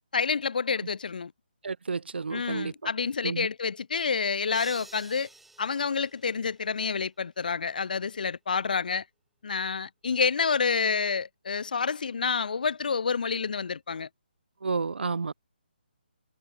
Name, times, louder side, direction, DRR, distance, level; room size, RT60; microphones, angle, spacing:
voice 1, 0.1-1.3 2.3-5.3 5.6-9.0 9.4-14.1, left 5 dB, 55° left, 0.6 m, -28 dB
voice 2, 1.6-2.7 3.2-3.5 14.6-15.3, right 4 dB, 80° right, 0.6 m, -31 dB
sound 1, 4.5-6.8, right 3 dB, ahead, 2.6 m, -49 dB
hypercardioid pair, 170°, 6 cm